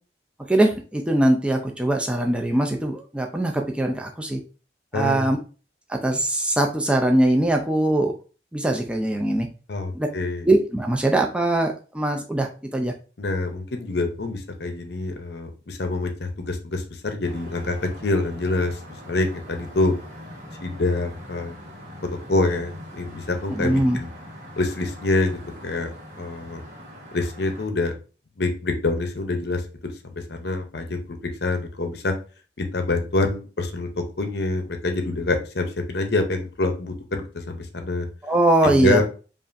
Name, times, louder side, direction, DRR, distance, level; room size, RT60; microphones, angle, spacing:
voice 1, 0.5-4.4 4.9-5.4 5.9-8.2 8.5-9.5 9.9-10.1 10.4-12.9 23.5-24.0 38.2-39.0, right 1 dB, 5° right, 2 dB, 0.4 m, -21 dB
voice 2, 4.9-5.3 9.7-10.5 13.2-19.9 20.6-21.5 22.0-24.1 24.6-26.6 27.1-27.9 28.4-29.9 30.3-32.1 32.6-38.1 38.6-39.0, left 2 dB, 55° left, 5 dB, 0.7 m, -26 dB
sound 1, 17.2-27.7, equal, 40° right, 1.3 m, -42 dB
5.3 x 2.5 x 2.6 m, 0.36 s
head